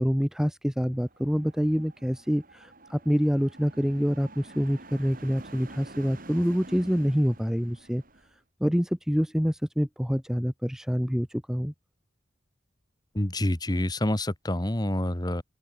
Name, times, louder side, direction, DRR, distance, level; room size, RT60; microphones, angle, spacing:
voice 1, 0.0-8.0 8.6-11.7, equal, 5° right, 1.9 m, -26 dB
sound 1, 0.9-8.4, right 2 dB, 50° right, 7.8 m, -48 dB
voice 2, 13.2-15.4, left 1 dB, 20° left, 1.6 m, -27 dB
open air
head